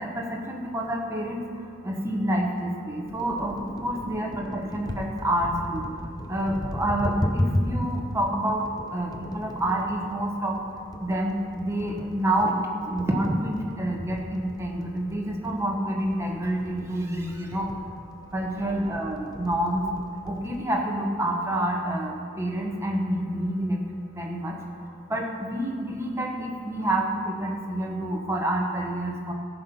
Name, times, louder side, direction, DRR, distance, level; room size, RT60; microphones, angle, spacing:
voice 1, 0.0-3.5 3.8-10.6 11.0-17.7 18.3-19.9 20.2-23.8 24.1-24.6 24.9-29.3, right 1 dB, 15° right, -1 dB, 1.1 m, -28 dB
sound 1, 3.0-20.7, left 1 dB, 20° left, 0.6 m, -35 dB
14.5 x 6.0 x 5.4 m, 2.2 s
head